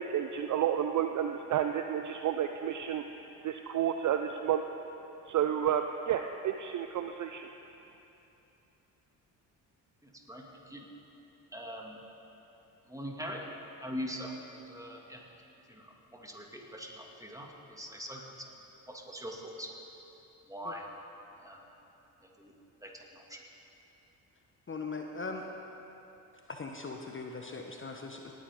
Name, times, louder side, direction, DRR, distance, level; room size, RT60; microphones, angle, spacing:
voice 1, 0.0-3.0 3.4-4.6 5.3-7.5, right 9 dB, 40° right, 7 dB, 0.5 m, -31 dB
voice 2, 10.0-10.9 11.5-12.0 12.9-13.4 13.8-15.2 15.7-18.2 18.9-19.8 20.5-20.8 21.4-21.7 22.2-22.5 22.8-23.4, equal, 5° right, -1 dB, 2.2 m, -42 dB
voice 3, 24.7-25.5 26.5-28.3, left 3 dB, 25° left, 3 dB, 1.0 m, -40 dB
18.5 x 9.2 x 3.7 m, 2.9 s
hypercardioid pair, 50°, 48 cm